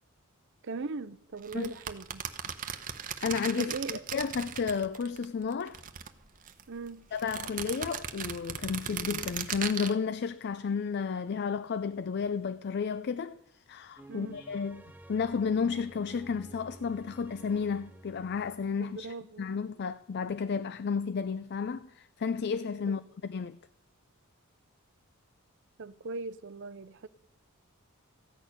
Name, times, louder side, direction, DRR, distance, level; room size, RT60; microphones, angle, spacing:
voice 1, 0.6-2.2 3.6-4.0 6.7-7.0 14.1-14.4 18.8-19.5 22.9-23.0 25.8-27.1, right 3 dB, 55° right, 0.6 m, -39 dB
sound 1, 1.4-5.2 5.5-6.6 7.2-9.9, right 8 dB, 40° right, 0.9 m, -37 dB
voice 2, 3.2-5.8 7.1-13.4 13.7-23.6, left 5 dB, 50° left, 0.4 m, -32 dB
sound 2, 14.0-19.1, right 1 dB, 5° right, 0.5 m, -52 dB
14.5 x 6.6 x 10.0 m
head